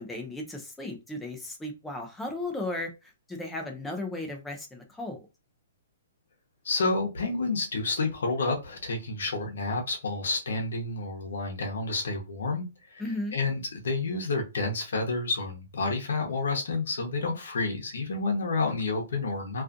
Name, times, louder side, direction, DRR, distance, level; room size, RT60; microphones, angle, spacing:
voice 1, 0.0-5.2 13.0-13.4, left 2 dB, 5° left, 3 dB, 0.3 m, -35 dB
voice 2, 6.6-13.0 13.3-19.6, left 3 dB, 75° left, 2 dB, 0.8 m, -29 dB
2.4 x 2.4 x 2.4 m, 0.27 s
hypercardioid pair, 175°, 0 cm